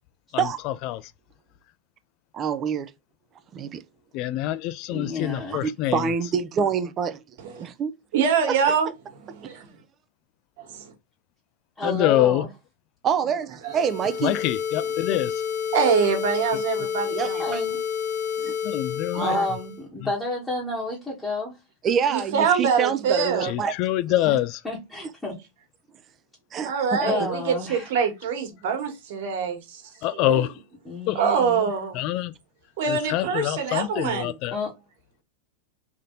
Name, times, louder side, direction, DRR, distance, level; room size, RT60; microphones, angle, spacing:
voice 1, 2.3-2.9 3.5-3.8 5.5-7.2 7.6-7.9 8.5-8.6 11.8-11.9 13.0-14.4 15.1-15.2 17.1-17.6 18.4-18.5 19.1-19.5 21.8-23.7 24.2-24.3 26.5-27.3, right 7 dB, 25° right, 0.5 m, -26 dB
voice 2, 4.1-6.0 11.8-12.4 14.2-15.3 18.7-19.3 23.5-24.5 30.0-30.5 31.1-31.2 32.0-32.3 32.9-34.5, left 14 dB, 45° left, 0.4 m, -25 dB
voice 3, 4.9-5.6 11.8-12.5 17.4-17.8 19.2-21.6 24.2-24.4 24.6-25.3 27.0-27.9 30.8-31.7 34.5-34.7, left 2 dB, 10° left, 1.3 m, -30 dB
voice 4, 8.1-8.9 9.2-9.7 13.6-13.7 14.8-14.9 15.7-17.4 22.1-23.5 26.6-29.8 30.1-30.5 31.1-32.0 32.8-34.4, right 6 dB, 65° right, 1.5 m, -24 dB
sound 1, 13.6-19.8, left 7 dB, 85° left, 1.3 m, -29 dB
3.5 x 2.7 x 3.7 m
supercardioid pair, 140°, 0 cm